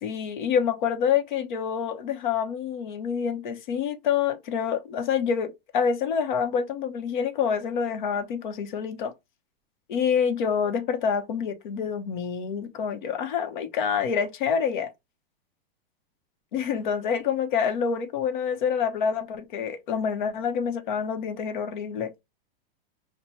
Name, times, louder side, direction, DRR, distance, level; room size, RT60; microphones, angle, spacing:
voice 1, 0.0-9.1 9.9-14.9 16.5-22.1, left 7 dB, 50° left, 0.8 m, -27 dB
5.5 x 2.1 x 2.9 m
supercardioid pair, 170°, 31 cm